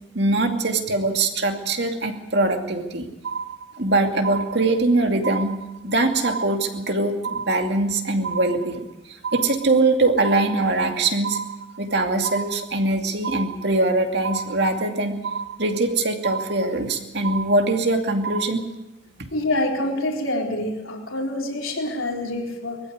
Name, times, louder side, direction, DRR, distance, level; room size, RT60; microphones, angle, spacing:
voice 1, 0.1-3.1 3.8-5.6 5.8-11.4 11.8-15.2 15.6-18.6 19.2-19.3, right 2 dB, 55° right, 4 dB, 2.5 m, -22 dB
sound 1, 3.2-3.9 4.2-4.9 5.2-5.9 6.2-6.9 7.2-7.9 8.2-8.9 9.2-9.9 10.2-10.9 11.2-11.9 12.2-12.9 13.2-13.9 14.2-14.9 15.2-15.9 16.2-16.9 17.2-17.9 18.2-18.5, right 6 dB, 80° right, 1.7 m, -31 dB
voice 2, 19.3-22.8, left 1 dB, 85° left, 1 dB, 4.2 m, -26 dB
22.0 x 14.5 x 9.6 m, 0.98 s
head